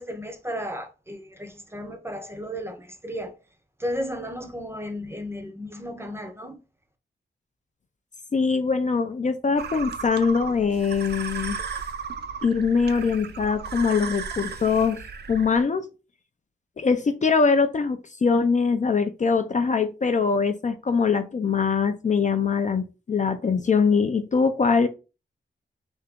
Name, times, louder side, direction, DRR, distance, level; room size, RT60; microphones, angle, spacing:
voice 1, 0.0-3.4 3.8-6.6, equal, 10° right, 0.6 m, -34 dB
voice 2, 8.3-11.6 12.4-15.0 15.3-15.9 16.8-24.9, left 5 dB, 40° left, 0.4 m, -22 dB
sound 1, 9.6-15.6, right 6 dB, 60° right, 0.5 m, -35 dB
3.5 x 2.8 x 3.5 m
wide cardioid pair, 140°, 20 cm